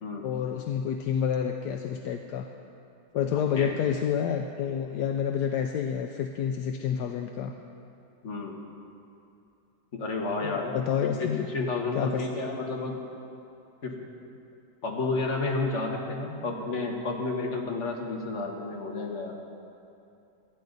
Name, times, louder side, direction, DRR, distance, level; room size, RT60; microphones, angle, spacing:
voice 1, 0.2-2.5 3.1-7.5 10.4-11.5 11.9-12.3, left 8 dB, 75° left, 5 dB, 1.2 m, -29 dB
voice 2, 8.2-8.6 9.9-10.7 11.0-13.0 13.8-14.0 14.8-19.4, left 3 dB, 45° left, 0 dB, 1.8 m, -31 dB
18.0 x 12.5 x 4.0 m, 2.7 s
omnidirectional pair, 1.9 m